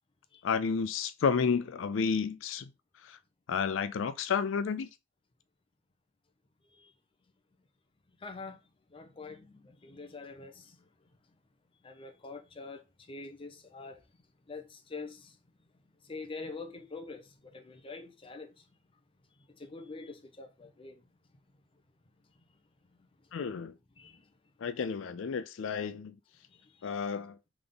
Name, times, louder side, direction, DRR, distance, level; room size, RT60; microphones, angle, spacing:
voice 1, 0.4-2.7 3.0-3.2 3.5-4.9 23.3-23.7 24.6-26.1 26.8-27.4, left 6 dB, 85° left, 0.4 m, -31 dB
voice 2, 8.2-8.6 8.9-10.9 11.8-15.4 16.0-18.7 19.4-21.1 22.3-22.4 22.9-23.3 24.0-24.3 26.5-27.1, left 3 dB, 30° left, 0.7 m, -46 dB
3.6 x 3.5 x 3.8 m
head